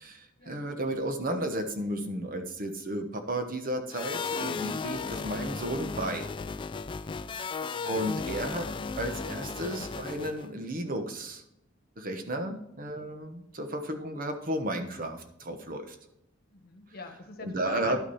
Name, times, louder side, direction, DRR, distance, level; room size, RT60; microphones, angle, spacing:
voice 1, 0.0-6.3 7.9-8.7 9.0-11.4 12.0-16.0 17.4-18.0, right 1 dB, 40° right, 6 dB, 1.1 m, -33 dB
sound 1, 3.9-10.5, left 4 dB, 25° left, 0.3 m, -35 dB
voice 2, 7.0-7.4 12.3-12.6 16.5-18.0, left 3 dB, 45° left, 7 dB, 1.3 m, -45 dB
11.5 x 5.9 x 4.3 m, 0.83 s
head